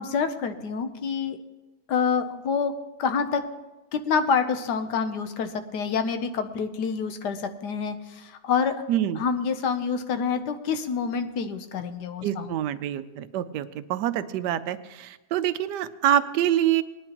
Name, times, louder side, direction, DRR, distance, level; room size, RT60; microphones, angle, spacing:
voice 1, 0.0-1.4 1.9-2.7 3.0-3.4 3.9-8.8 9.2-12.5, left 6 dB, 80° left, 9 dB, 1.4 m, -27 dB
voice 2, 8.9-9.2 12.2-16.8, right 11 dB, 85° right, 13 dB, 1.2 m, -26 dB
20.0 x 10.0 x 2.9 m, 1.1 s
omnidirectional pair, 1.8 m